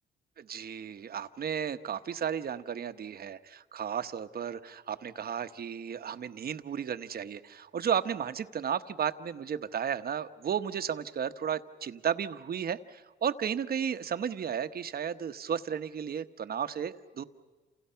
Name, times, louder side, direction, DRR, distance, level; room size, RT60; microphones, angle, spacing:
voice 1, 0.4-17.2, right 8 dB, 50° right, 10 dB, 1.1 m, -34 dB
29.0 x 28.5 x 5.7 m, 1.3 s
cardioid pair, 90°, 20 cm